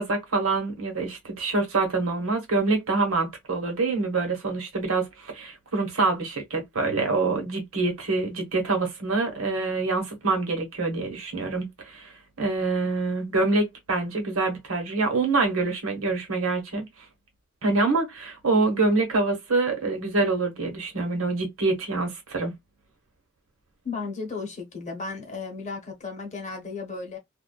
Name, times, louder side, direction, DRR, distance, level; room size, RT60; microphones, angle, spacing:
voice 1, 0.0-12.1 12.4-16.9 17.6-22.5, right 3 dB, 85° right, 1.2 m, -26 dB
voice 2, 23.8-27.2, left 4 dB, 35° left, 1.0 m, -34 dB
2.5 x 2.4 x 2.3 m
head